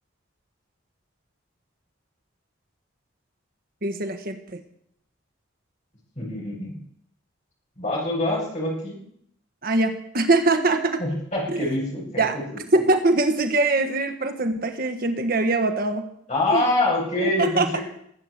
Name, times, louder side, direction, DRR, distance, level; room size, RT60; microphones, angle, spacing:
voice 1, 3.8-4.6 9.6-11.0 11.5-11.7 12.2-12.4 12.7-16.0 16.5-16.6 17.2-17.8, right 2 dB, 45° right, 7 dB, 1.4 m, -22 dB
voice 2, 6.2-6.7 7.8-9.0 11.0-12.8 16.3-17.8, left 2 dB, 35° left, -3 dB, 7.7 m, -25 dB
20.5 x 8.8 x 8.0 m, 0.71 s
head